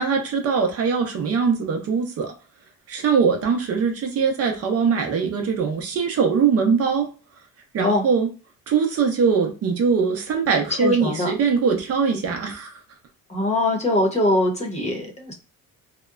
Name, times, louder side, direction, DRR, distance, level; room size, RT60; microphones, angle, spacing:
voice 1, 0.0-2.3 2.9-7.1 7.7-8.3 8.7-12.7, right 5 dB, 50° right, 0.6 m, -21 dB
voice 2, 10.8-11.3 13.3-15.3, left 1 dB, 20° left, 0.8 m, -22 dB
2.8 x 2.1 x 2.3 m
cardioid pair, 125°, 31 cm